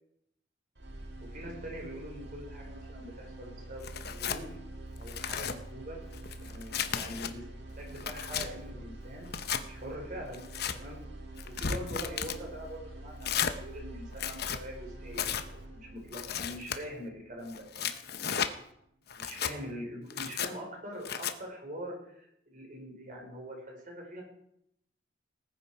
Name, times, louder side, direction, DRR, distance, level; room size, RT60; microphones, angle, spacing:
sound 1, 0.7-18.8, right 1 dB, 60° right, 2.1 m, -46 dB
voice 1, 1.3-4.6 5.0-6.0 6.4-7.4 7.8-9.3 9.6-10.4 10.7-11.0 11.4-15.3 15.7-17.9 19.2-24.2, equal, 45° right, 0 dB, 4.6 m, -43 dB
Tearing, 3.8-4.4 5.0-5.6 6.1-7.3 7.8-8.5 9.2-9.6 10.3-10.8 11.4-12.4 13.2-13.6 14.1-14.6 15.1-15.4 16.1-16.8 17.5-18.5 19.1-19.5 20.1-20.5 21.0-21.3, left 8 dB, 55° left, 0.9 m, -34 dB
19.0 x 9.3 x 4.8 m, 0.77 s
head